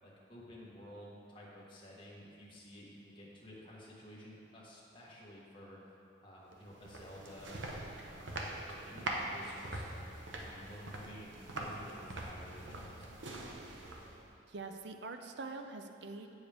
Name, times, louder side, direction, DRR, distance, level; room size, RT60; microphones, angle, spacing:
voice 1, 0.0-5.8 6.2-7.5 8.0-13.2, equal, 25° left, -6 dB, 1.4 m, -53 dB
sound 1, 6.5-14.3, right 1 dB, 80° right, 0.8 m, -43 dB
voice 2, 14.5-16.3, right 3 dB, 65° right, 6 dB, 0.5 m, -44 dB
8.7 x 7.1 x 3.4 m, 2.7 s
head